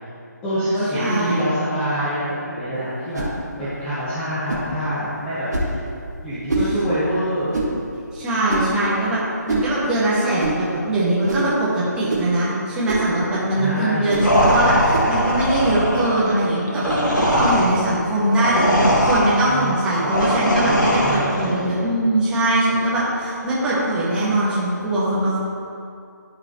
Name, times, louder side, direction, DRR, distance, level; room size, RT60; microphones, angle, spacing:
voice 1, 0.4-3.2 3.6-5.8 6.2-7.6 13.5-14.1 19.5-21.5, equal, 10° left, -13 dB, 1.5 m, -26 dB
voice 2, 0.9-1.4 8.1-25.4, right 1 dB, 5° right, -10 dB, 1.6 m, -21 dB
sound 1, 3.1-3.4 4.5-4.7 5.5-5.8 6.5-6.7 7.5-7.8 8.5-8.8 9.5-9.7 10.4-10.6 11.3-11.5 12.1-12.3 12.9-13.1 14.1-14.3 14.9-15.1, right 2 dB, 65° right, 1.9 m, -24 dB
sound 2, 14.2-21.6, equal, 75° left, 1.5 m, -20 dB
13.5 x 4.9 x 3.0 m, 2.5 s
figure-of-eight pair, 150°, 10 cm